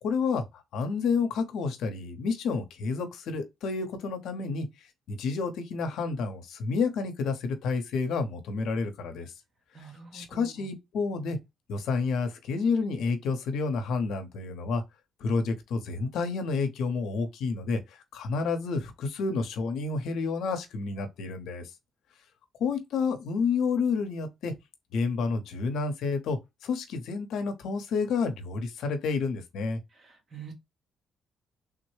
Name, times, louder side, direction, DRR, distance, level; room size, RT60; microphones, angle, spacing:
voice 1, 0.0-4.7 5.1-9.3 10.1-11.4 11.7-14.8 15.2-21.7 22.6-24.5 24.9-29.8, left 4 dB, 80° left, 0.7 m, -30 dB
voice 2, 9.7-10.7 30.0-30.5, right 5 dB, 45° right, 1.3 m, -46 dB
3.5 x 2.1 x 3.1 m
cardioid pair, 90°, 0 cm